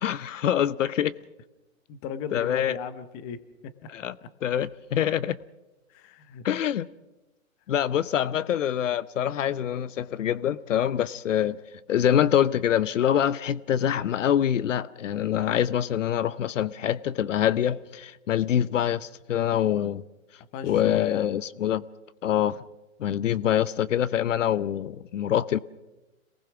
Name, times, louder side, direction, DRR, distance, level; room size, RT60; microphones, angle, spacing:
voice 1, 0.0-1.1 2.3-2.7 3.9-4.1 4.4-5.4 6.4-6.9 7.7-11.6 11.9-20.0 20.6-21.8 22.2-22.6 23.0-25.6, left 10 dB, 65° left, 0.8 m, -25 dB
voice 2, 1.9-3.7 4.2-4.3 5.9-6.4 8.0-8.1 20.5-21.3, left 7 dB, 20° left, 0.8 m, -37 dB
27.0 x 19.0 x 6.0 m
hypercardioid pair, 150°, 41 cm